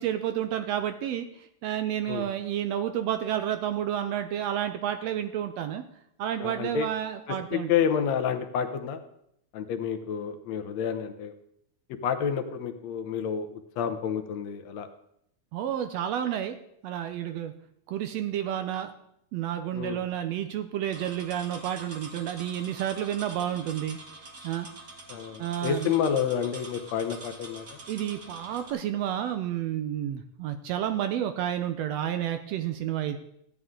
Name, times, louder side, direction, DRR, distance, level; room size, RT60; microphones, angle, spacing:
voice 1, 0.0-5.8 6.2-7.7 15.5-16.6 16.8-17.5 17.9-18.9 19.3-24.0 24.4-24.7 25.4-25.9 27.9-33.2, right 10 dB, 75° right, 8 dB, 1.6 m, -30 dB
voice 2, 6.4-6.9 7.3-9.0 9.5-11.3 12.0-13.5 13.8-14.9 19.7-20.0 25.1-27.7, left 8 dB, 75° left, 6 dB, 1.9 m, -29 dB
sound 1, 20.9-28.7, right 2 dB, 45° right, 1.1 m, -45 dB
14.0 x 9.5 x 3.7 m, 0.74 s
omnidirectional pair, 3.3 m